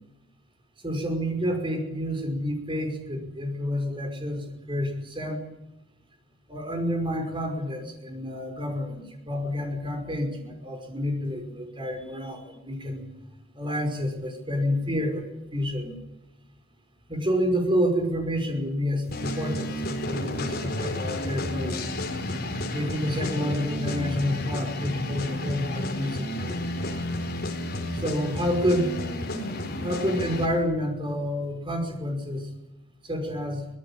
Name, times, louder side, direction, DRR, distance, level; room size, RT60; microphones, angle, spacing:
voice 1, 0.8-5.4 6.5-13.0 13.5-16.0 17.1-21.8 22.7-26.6 27.9-29.0 29.8-32.5 33.0-33.7, equal, 25° right, 5 dB, 5.5 m, -29 dB
sound 1, 19.1-30.5, left 1 dB, 45° left, 4.4 m, -31 dB
25.0 x 19.5 x 8.9 m, 0.96 s
head